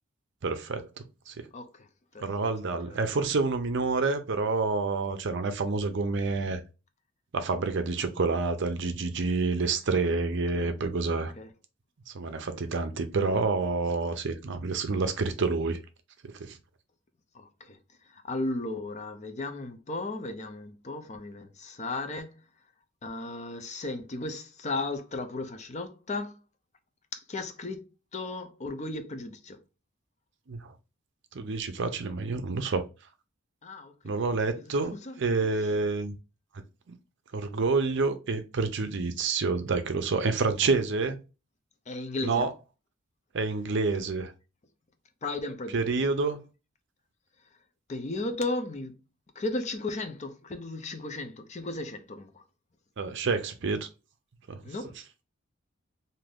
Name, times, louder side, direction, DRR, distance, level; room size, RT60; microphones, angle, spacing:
voice 1, 0.4-0.9 1.3-1.5 2.2-6.6 7.3-11.3 12.1-15.8 16.2-16.6 30.5-30.7 31.3-32.8 34.0-36.1 36.9-37.0 37.3-41.2 42.2-42.5 43.3-44.3 45.7-46.4 53.0-53.9 54.5-54.6, right 3 dB, 55° right, 0.5 m, -28 dB
voice 2, 1.5-1.9 2.1-2.2 2.6-3.0 10.5-10.7 11.4-11.5 17.3-17.8 18.1-22.4 23.0-26.4 27.1-29.6 33.6-33.9 34.6-34.7 35.0-35.5 41.9-42.4 45.2-45.8 47.9-48.9 49.4-52.4 54.6-54.9, left 2 dB, 35° left, 0.5 m, -35 dB
2.6 x 2.5 x 3.4 m
head